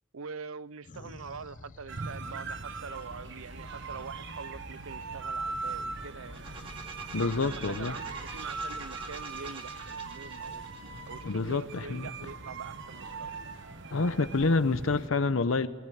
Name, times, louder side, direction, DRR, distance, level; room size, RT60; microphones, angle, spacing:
voice 1, 0.1-6.4 7.4-10.7 11.1-13.3, right 5 dB, 90° right, 18 dB, 0.6 m, -44 dB
sound 1, 0.8-11.5, left 2 dB, 40° left, 0.7 m, -51 dB
sound 2, 1.9-15.1, right 4 dB, 65° right, 1.3 m, -40 dB
sound 3, 6.2-12.1, right 3 dB, 25° right, 2.4 m, -46 dB
voice 2, 7.1-8.0 11.2-12.1 13.9-15.7, left 3 dB, 75° left, 12 dB, 0.8 m, -27 dB
20.5 x 19.5 x 9.2 m, 1.3 s
head